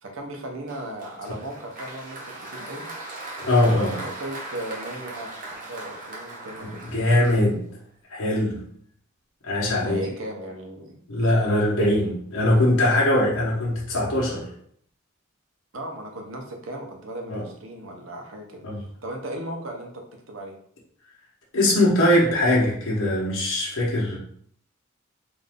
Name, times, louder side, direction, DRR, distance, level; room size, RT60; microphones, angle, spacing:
voice 1, 0.0-2.2 2.5-2.9 3.6-7.6 9.6-11.0 15.7-20.5, right 1 dB, 65° right, 2 dB, 0.8 m, -36 dB
Applause, 0.7-7.8, right 2 dB, 40° right, 0.9 m, -39 dB
voice 2, 3.4-3.9 6.6-7.6 8.1-8.6 9.4-10.0 11.1-14.5 17.3-17.4 18.6-18.8 21.5-24.2, left 1 dB, 75° left, -5 dB, 1.2 m, -21 dB
3.8 x 2.6 x 3.6 m, 0.63 s
head